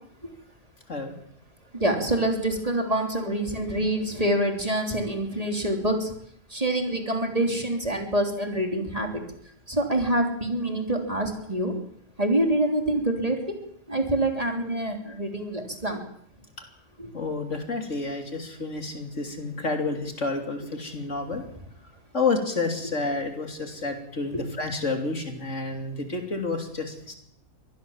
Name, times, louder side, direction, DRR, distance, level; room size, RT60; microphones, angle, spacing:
voice 1, 1.7-6.1 6.5-9.2 9.7-11.7 12.2-13.6 13.9-16.0 17.0-17.1 24.3-24.4, right 1 dB, 25° right, 3 dB, 3.5 m, -26 dB
voice 2, 17.1-21.4 22.1-27.2, left 3 dB, 55° left, 5 dB, 3.4 m, -29 dB
24.5 x 19.5 x 7.4 m, 0.70 s
omnidirectional pair, 1.5 m